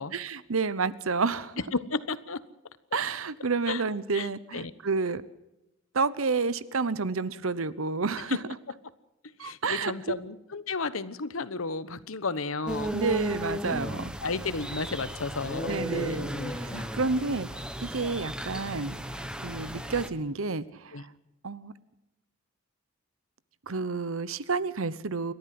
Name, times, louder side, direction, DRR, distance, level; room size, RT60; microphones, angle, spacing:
voice 1, 0.1-1.6 2.9-5.2 5.9-8.4 9.4-9.9 12.9-14.1 15.7-16.3 16.6-21.1 21.4-21.7 23.7-25.3, right 4 dB, 85° right, 17 dB, 1.0 m, -30 dB
voice 2, 1.7-2.4 3.7-3.8 4.1-4.3 4.5-4.7 8.3-8.4 9.4-13.0 14.2-16.9 20.9-21.0, left 4 dB, 80° left, 14 dB, 1.2 m, -33 dB
sound 1, 12.7-20.1, equal, 5° right, 1.3 m, -35 dB
29.5 x 13.0 x 7.8 m, 0.93 s
head